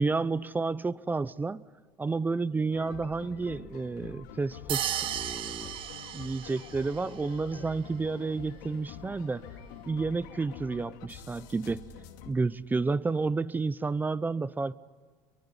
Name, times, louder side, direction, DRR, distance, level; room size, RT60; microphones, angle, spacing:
voice 1, 0.0-1.6 2.0-5.7 6.1-9.4 9.9-11.8 12.3-14.7, right 4 dB, 20° right, 17 dB, 0.8 m, -30 dB
sound 1, 2.7-12.3, left 8 dB, 90° left, 2.5 m, -47 dB
sound 2, 4.7-7.0, right 12 dB, 55° right, 1.1 m, -34 dB
25.5 x 23.0 x 9.8 m, 1.5 s
supercardioid pair, 95°, 10 cm